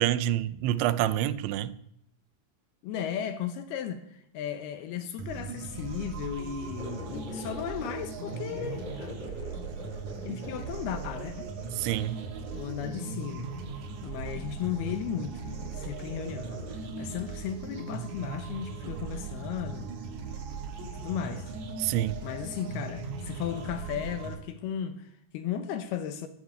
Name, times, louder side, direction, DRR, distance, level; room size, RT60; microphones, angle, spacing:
voice 1, 0.0-1.7 11.8-12.2 21.8-22.2, right 12 dB, 85° right, 3.0 m, -27 dB
voice 2, 2.8-9.2 10.2-11.5 12.5-13.5 14.0-16.6 17.0-19.9 20.8-21.5 22.2-26.3, left 9 dB, 75° left, 2.6 m, -35 dB
sound 1, 5.2-24.3, right 4 dB, 50° right, 2.7 m, -38 dB
sound 2, 6.8-7.9 8.2-13.7 14.7-15.3 15.6-16.7, left 1 dB, 10° left, 3.1 m, -46 dB
13.0 x 11.5 x 9.4 m
omnidirectional pair, 5.2 m